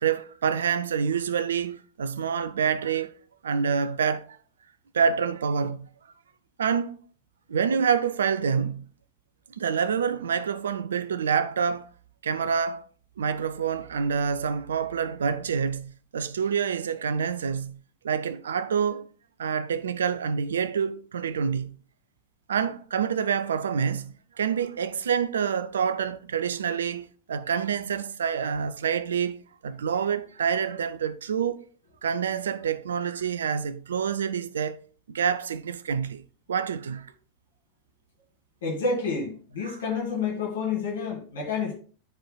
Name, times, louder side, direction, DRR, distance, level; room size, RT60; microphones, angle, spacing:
voice 1, 0.0-3.1 3.4-4.3 4.9-5.9 6.6-7.0 7.5-8.9 9.6-11.9 12.2-12.8 13.2-19.1 19.4-21.8 22.5-31.6 32.0-34.8 35.1-37.1 39.7-39.8, right 7 dB, 65° right, 0.5 m, -27 dB
voice 2, 38.6-41.7, left 4 dB, 60° left, 2.3 m, -29 dB
13.0 x 4.6 x 2.2 m
figure-of-eight pair, 90°, 0 cm